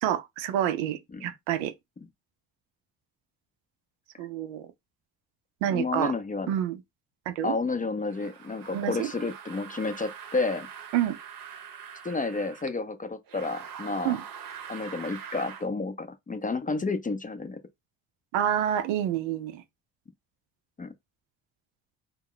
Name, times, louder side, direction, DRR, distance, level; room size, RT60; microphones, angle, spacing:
voice 1, 0.0-1.7 4.2-4.7 5.6-6.1 6.5-6.8 7.3-7.6 8.7-9.1 10.9-11.2 14.0-14.2 18.3-19.6, right 11 dB, 85° right, 0.5 m, -28 dB
voice 2, 5.6-6.5 7.4-10.7 12.0-14.2 14.7-17.6 20.8-20.9, left 3 dB, 20° left, 0.4 m, -31 dB
sound 1, 8.1-12.7 13.3-15.7, right 8 dB, 50° right, 0.7 m, -43 dB
2.2 x 2.0 x 3.8 m
supercardioid pair, 60°, 45 cm